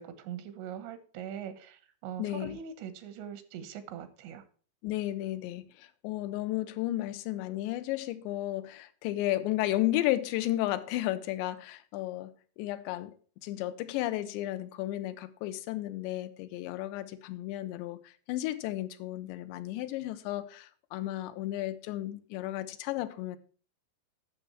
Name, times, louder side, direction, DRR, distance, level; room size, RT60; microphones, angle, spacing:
voice 1, 0.0-4.4, right 9 dB, 85° right, 3.4 m, -42 dB
voice 2, 2.2-2.6 4.8-13.2 13.4-23.4, left 15 dB, 85° left, 3.0 m, -33 dB
9.6 x 6.9 x 5.9 m
omnidirectional pair, 5.0 m